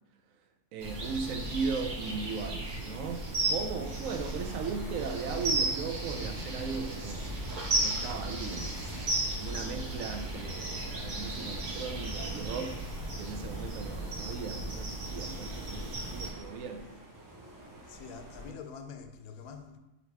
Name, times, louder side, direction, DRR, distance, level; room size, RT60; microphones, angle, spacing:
voice 1, 0.7-7.2 7.8-8.8 9.4-12.7 13.2-16.8, right 5 dB, 75° right, 0.9 m, -37 dB
sound 1, 0.8-16.3, right 2 dB, 40° right, 0.8 m, -35 dB
sound 2, 3.9-18.5, right 1 dB, 25° right, 0.4 m, -48 dB
sound 3, 7.1-14.1, left 3 dB, 65° left, 0.7 m, -47 dB
voice 2, 17.9-19.8, left 5 dB, 85° left, 1.0 m, -45 dB
3.9 x 3.0 x 4.4 m
omnidirectional pair, 1.5 m